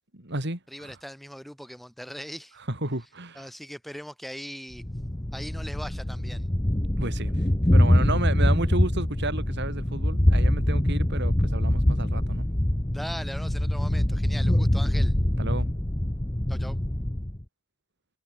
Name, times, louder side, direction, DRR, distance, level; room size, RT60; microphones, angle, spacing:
voice 1, 0.1-1.0 2.7-3.5 7.0-7.3 7.7-12.5 15.4-15.7, right 2 dB, 50° right, 4.2 m, -32 dB
voice 2, 0.7-2.6 3.4-4.8 5.3-6.5 12.9-15.1 16.5-16.8, equal, ahead, 5.8 m, -40 dB
Thunder, 4.8-17.4, left 1 dB, 15° left, 1.0 m, -24 dB
head